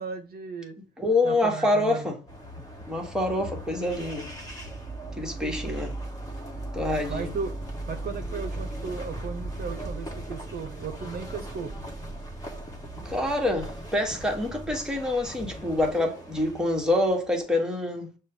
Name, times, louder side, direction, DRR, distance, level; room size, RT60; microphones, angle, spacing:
voice 1, 0.0-0.8 1.2-2.1 5.7-5.9 7.1-7.5 7.9-11.7, right 5 dB, 50° right, 0.7 m, -35 dB
voice 2, 1.0-2.2 2.9-4.3 5.2-5.9 6.7-7.3 13.0-18.1, left 2 dB, 5° right, 1.3 m, -26 dB
sound 1, 2.3-17.4, right 1 dB, 15° left, 1.3 m, -38 dB
6.3 x 2.3 x 3.5 m
cardioid pair, 90°, 20 cm